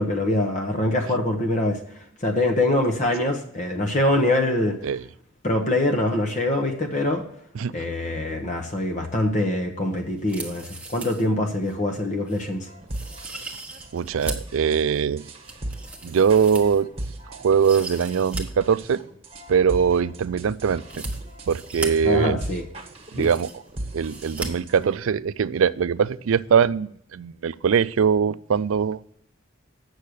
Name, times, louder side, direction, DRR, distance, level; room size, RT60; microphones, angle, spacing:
voice 1, 0.0-1.8 2.2-4.8 5.4-7.2 7.7-12.7 22.0-22.6 23.2-23.3, left 1 dB, 35° left, 3 dB, 1.0 m, -24 dB
sound 1, 10.2-11.3 11.6-11.7 12.3-12.4 12.9-14.5 15.0-17.1 17.5-18.4 18.7-18.8 20.8-21.9 22.7-22.8 23.0-23.7 24.0-24.5 24.8-24.9, right 3 dB, 5° right, 1.1 m, -38 dB
sound 2, 12.7-25.0, right 1 dB, 30° right, 1.5 m, -37 dB
voice 2, 13.9-15.2 16.0-16.9 17.3-19.0 19.5-20.8 21.5-22.4 23.1-23.5 23.9-29.0, right 6 dB, 85° right, 17 dB, 0.4 m, -22 dB
8.4 x 6.4 x 6.4 m, 0.69 s
head